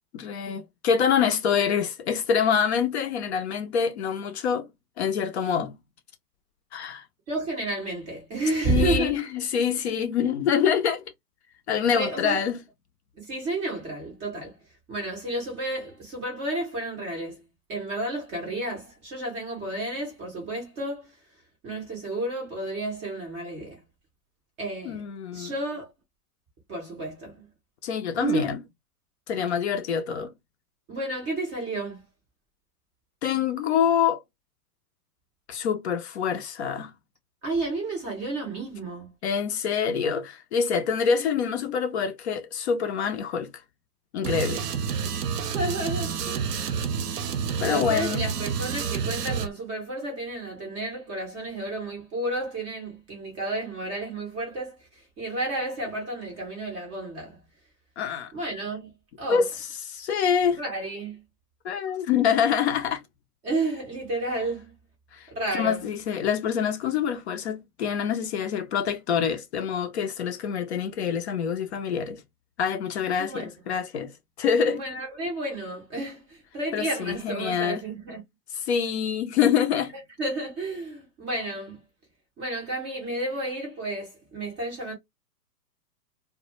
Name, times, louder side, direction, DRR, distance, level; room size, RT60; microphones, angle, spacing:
voice 1, 0.1-4.7 5.0-5.8 6.7-7.0 8.7-11.0 11.7-12.6 24.9-25.5 27.8-28.6 29.3-30.3 33.2-34.2 35.5-36.9 39.2-43.5 44.1-44.6 47.6-48.2 58.0-58.3 59.3-60.6 61.6-63.0 65.1-65.3 65.5-72.2 72.6-74.1 74.4-74.8 76.7-77.8 78.6-79.9, left 7 dB, 45° left, 0.4 m, -26 dB
voice 2, 7.3-9.2 11.9-12.4 13.2-14.6 14.9-17.4 17.7-21.1 21.6-23.8 24.6-25.0 25.3-25.9 26.7-27.5 28.2-28.5 30.9-32.0 37.4-39.1 45.4-46.5 47.6-57.4 58.3-59.4 60.5-61.2 63.4-64.7 65.3-65.8 73.2-73.5 74.7-78.2 80.2-81.8 82.4-84.9, right 2 dB, 15° right, 0.4 m, -31 dB
sound 1, 44.2-49.5, right 6 dB, 80° right, 0.7 m, -29 dB
2.1 x 2.1 x 2.9 m
hypercardioid pair, 125°, 47 cm